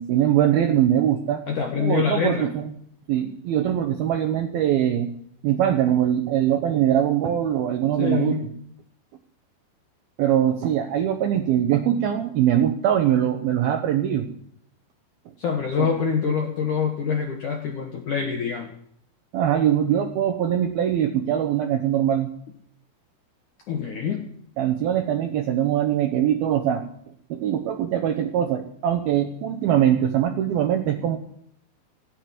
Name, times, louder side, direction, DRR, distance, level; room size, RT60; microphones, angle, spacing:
voice 1, 0.0-1.4 1.8-2.7 3.1-5.1 5.4-8.4 10.2-14.3 15.8-15.9 19.3-22.3 24.6-26.8 27.3-31.2, right 10 dB, 80° right, 5 dB, 2.2 m, -22 dB
voice 2, 1.5-2.5 8.0-8.5 15.4-18.7 23.7-24.2, left 6 dB, 65° left, 2 dB, 2.0 m, -25 dB
17.0 x 7.9 x 9.5 m, 0.69 s
omnidirectional pair, 5.6 m